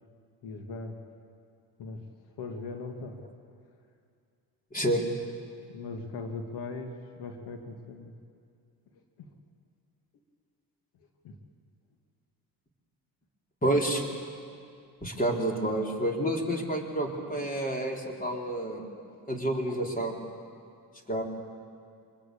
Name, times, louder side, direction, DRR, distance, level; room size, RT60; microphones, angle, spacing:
voice 1, 0.4-1.0 1.8-2.0 2.4-3.2 5.7-8.1 9.2-9.3 11.2-11.4 19.1-19.2, left 3 dB, 85° left, 4 dB, 2.1 m, -39 dB
voice 2, 4.7-5.0 13.6-14.0 15.0-18.8 19.3-20.2 21.1-21.2, right 1 dB, 20° left, 1 dB, 4.3 m, -29 dB
26.5 x 21.0 x 8.6 m, 2.3 s
cardioid pair, 75°, 39 cm